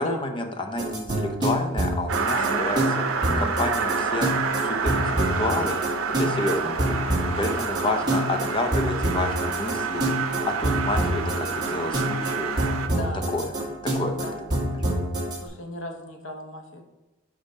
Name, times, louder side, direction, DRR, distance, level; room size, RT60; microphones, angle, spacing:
voice 1, 0.0-2.8 3.4-4.3 4.6-5.8 6.2-13.0 13.3-13.4 13.9-14.3 14.5-14.6, left 2 dB, 25° left, 4 dB, 0.6 m, -29 dB
sound 1, 0.8-15.4, right 1 dB, 20° right, 1.3 m, -27 dB
sound 2, 2.1-12.9, right 5 dB, 85° right, 0.6 m, -28 dB
voice 2, 2.4-2.7 7.8-8.0 12.9-13.6 14.1-14.4 15.4-16.8, left 1 dB, 65° left, 3 dB, 1.0 m, -37 dB
5.3 x 5.1 x 4.1 m, 1.1 s
head